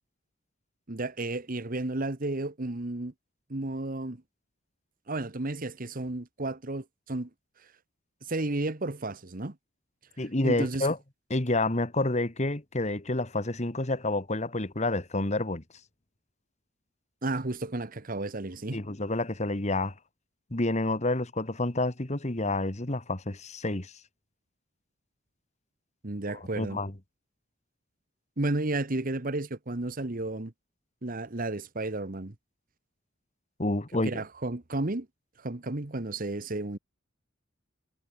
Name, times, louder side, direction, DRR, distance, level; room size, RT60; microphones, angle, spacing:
voice 1, 0.9-3.1 3.5-4.2 5.1-7.3 8.3-9.6 10.4-10.9 17.2-18.8 26.0-26.8 28.4-30.5 31.0-32.3 34.0-35.1 35.4-36.8, right 2 dB, 45° right, 1.3 m, -32 dB
voice 2, 10.2-11.0 11.3-15.6 18.7-19.9 20.5-23.9 26.3-26.9 33.6-34.2, left 2 dB, 35° left, 1.8 m, -29 dB
head